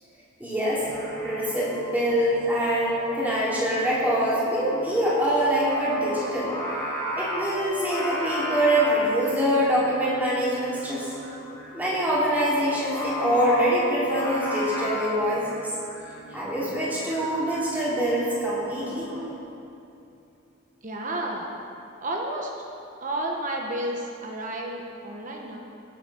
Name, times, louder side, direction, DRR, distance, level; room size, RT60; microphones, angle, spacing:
voice 1, 0.4-0.9 1.2-6.5 7.1-11.1 11.7-15.4 16.3-19.1, equal, 10° right, -8 dB, 3.3 m, -24 dB
Singing, 0.8-19.3, equal, 10° left, 3.1 m, -35 dB
voice 2, 20.8-21.5 22.0-22.7 23.0-25.6, right 1 dB, 40° right, 0 dB, 1.0 m, -31 dB
19.0 x 8.1 x 4.4 m, 2.7 s
head